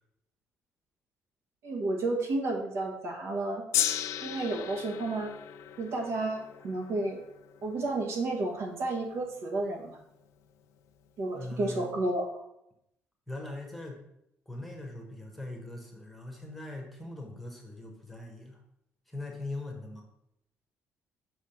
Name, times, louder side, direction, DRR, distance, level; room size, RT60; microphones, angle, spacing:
voice 1, 1.6-3.6 4.2-5.3 5.8-7.2 7.6-10.0 11.2-12.3, right 2 dB, 65° right, 2 dB, 1.4 m, -31 dB
Gong, 3.7-10.1 10.9-11.0, left 12 dB, 80° left, 0.4 m, -36 dB
voice 2, 11.3-11.9 13.3-14.0 14.5-18.6 19.1-20.1, left 2 dB, ahead, 0 dB, 1.1 m, -41 dB
6.1 x 3.5 x 5.7 m, 0.79 s
cardioid pair, 155°, 5 cm